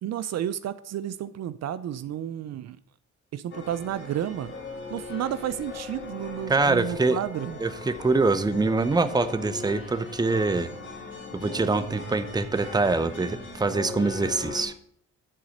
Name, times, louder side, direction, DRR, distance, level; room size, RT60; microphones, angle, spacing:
voice 1, 0.0-2.8 3.3-4.5 4.9-7.6, right 10 dB, 60° right, 14 dB, 0.5 m, -31 dB
sound 1, 3.5-14.6, left 3 dB, 40° left, 2.1 m, -39 dB
voice 2, 6.5-7.2 7.6-10.7 11.3-14.7, right 3 dB, 15° right, 11 dB, 0.7 m, -24 dB
9.9 x 4.1 x 6.5 m, 0.64 s
cardioid pair, 90°, 30 cm